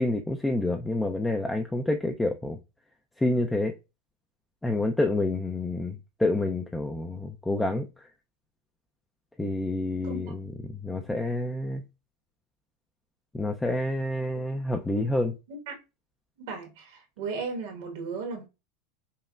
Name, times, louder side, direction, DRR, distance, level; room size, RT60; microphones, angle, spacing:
voice 1, 0.0-2.6 3.2-3.7 4.6-7.9 9.4-11.8 13.3-15.4, left 2 dB, 10° left, 0.4 m, -28 dB
voice 2, 16.4-18.5, right 4 dB, 75° right, 1.3 m, -35 dB
5.4 x 2.1 x 2.4 m
supercardioid pair, 120°, 0 cm